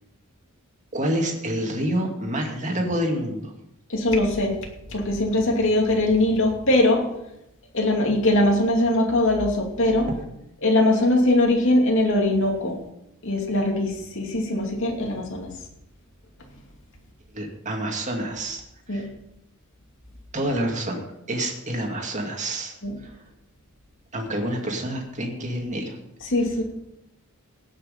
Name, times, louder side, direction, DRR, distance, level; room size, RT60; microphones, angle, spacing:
voice 1, 0.9-3.5 17.3-18.6 18.9-19.1 20.3-21.0 21.3-22.7 23.0-23.2 24.1-26.0, right 1 dB, 35° right, 1 dB, 2.2 m, -27 dB
voice 2, 3.9-4.5 4.9-7.0 7.7-10.1 10.6-12.8 13.2-15.5 18.9-19.0 22.8-22.9 26.3-26.6, left 1 dB, 60° left, 1 dB, 2.7 m, -21 dB
18.0 x 6.5 x 5.3 m, 0.83 s
head